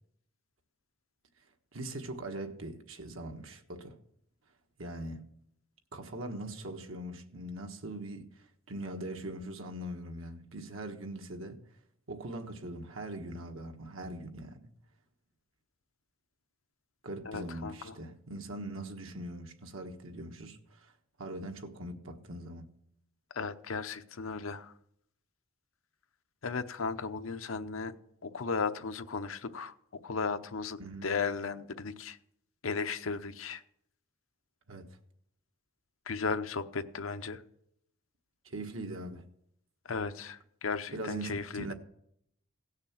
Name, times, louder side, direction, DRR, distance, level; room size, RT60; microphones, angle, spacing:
voice 1, 1.7-4.0 4.8-5.2 5.9-11.6 12.1-14.6 17.0-20.9 21.2-22.7 30.8-31.1 34.7-35.0 38.4-39.2 40.9-41.7, right 1 dB, 85° right, 1.4 m, -41 dB
voice 2, 17.3-17.9 23.3-24.7 26.4-27.9 28.2-29.7 30.0-32.2 32.6-33.6 36.1-37.4 39.8-41.7, left 5 dB, 85° left, 0.8 m, -35 dB
17.0 x 6.6 x 7.4 m
head